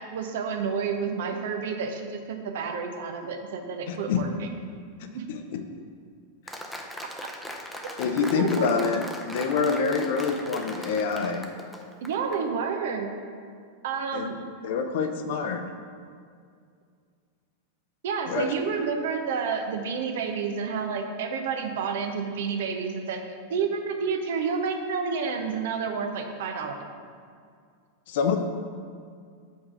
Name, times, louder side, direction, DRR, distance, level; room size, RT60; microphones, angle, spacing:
voice 1, 0.0-4.5 5.1-5.3 8.3-8.7 12.0-13.1 13.8-14.4 18.0-23.2 23.5-26.8, right 5 dB, 55° right, 5 dB, 0.7 m, -30 dB
voice 2, 3.9-4.2 5.3-5.6 8.0-9.0 9.3-11.4 14.1-14.3 14.6-15.6 18.3-18.5 28.1-28.4, left 5 dB, 55° left, 6 dB, 0.6 m, -26 dB
Applause, 6.5-12.4, equal, ahead, 0.7 m, -39 dB
5.4 x 4.8 x 6.1 m, 2.2 s
figure-of-eight pair, 90°, 0 cm